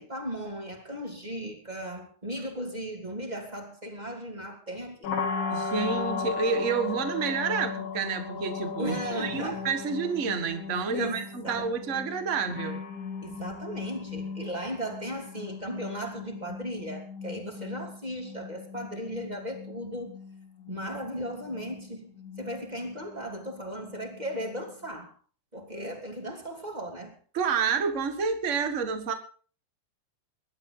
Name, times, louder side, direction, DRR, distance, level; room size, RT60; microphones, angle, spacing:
voice 1, 0.0-5.2 8.8-9.7 10.9-11.7 13.2-20.2 20.7-22.1 22.4-25.1 25.5-27.2, equal, 15° right, 2.3 m, -36 dB
sound 1, 5.0-24.9, left 5 dB, 65° left, 4.0 m, -37 dB
voice 2, 5.5-12.8 27.3-29.1, right 5 dB, 70° right, 0.7 m, -29 dB
22.0 x 12.0 x 3.9 m
omnidirectional pair, 4.4 m